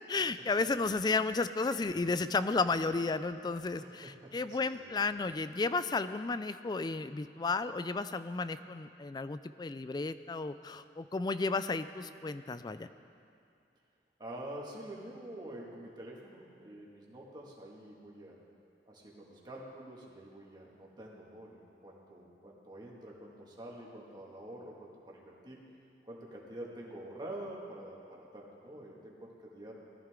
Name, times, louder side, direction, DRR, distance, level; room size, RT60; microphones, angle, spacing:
voice 1, 0.1-12.9, left 3 dB, 25° left, 13 dB, 0.3 m, -33 dB
voice 2, 3.8-5.0 14.2-18.4 18.9-25.6 26.0-29.7, right 1 dB, 25° right, -3 dB, 2.1 m, -47 dB
19.0 x 13.5 x 3.8 m, 2.5 s
head